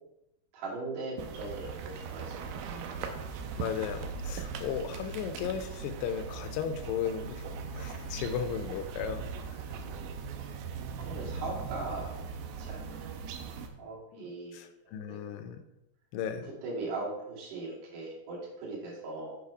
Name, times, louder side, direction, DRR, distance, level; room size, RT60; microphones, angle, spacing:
voice 1, 0.5-2.6 10.3-10.5 11.0-12.2 12.6-13.1 13.8-15.5 16.3-19.4, right 2 dB, 55° right, -5 dB, 3.6 m, -40 dB
stere-atmo-schoeps-m-s-village, 1.2-13.7, right 5 dB, 80° right, 2.4 m, -39 dB
voice 2, 3.6-7.4 7.7-9.3 14.1-14.3 14.5-15.6 16.1-16.5, left 8 dB, 80° left, 8 dB, 2.8 m, -35 dB
7.2 x 6.2 x 4.8 m, 0.86 s
omnidirectional pair, 4.9 m